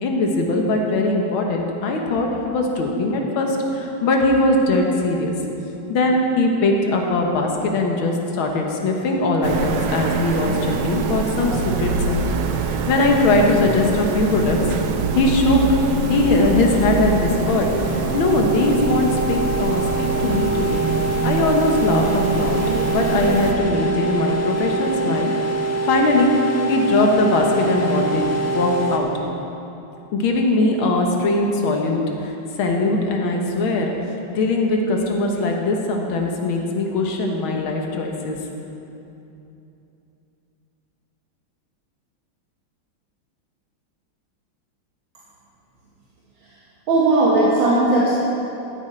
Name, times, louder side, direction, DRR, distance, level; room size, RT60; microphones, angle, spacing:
voice 1, 0.0-5.3 5.9-12.3 12.9-14.6 15.1-15.6 16.1-20.9 21.2-22.6 22.9-25.3 25.9-26.3 26.7-28.3 28.5-29.1 30.1-33.9 34.4-38.4, left 2 dB, 85° left, 1 dB, 2.0 m, -20 dB
sound 1, 9.4-23.5, right 5 dB, 90° right, 1.6 m, -24 dB
sound 2, 15.9-29.0, right 3 dB, 15° left, 0.5 m, -25 dB
voice 2, 46.9-48.1, right 2 dB, 70° right, -6 dB, 2.2 m, -17 dB
14.0 x 9.9 x 4.4 m, 2.8 s
omnidirectional pair, 2.2 m